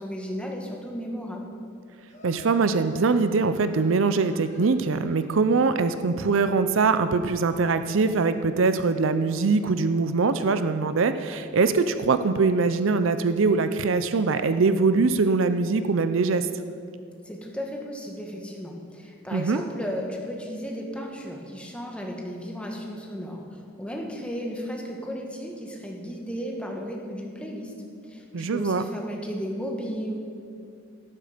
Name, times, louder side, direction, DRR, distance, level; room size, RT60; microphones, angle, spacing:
voice 1, 0.0-1.5 17.2-27.7 28.0-30.2, equal, 5° left, 0 dB, 1.5 m, -34 dB
Laughter, 2.1-5.3, left 2 dB, 35° left, 1.9 m, -50 dB
voice 2, 2.2-16.5 19.3-19.6 28.3-28.8, right 4 dB, 65° right, 11 dB, 0.5 m, -22 dB
13.0 x 12.0 x 5.1 m, 2.4 s
head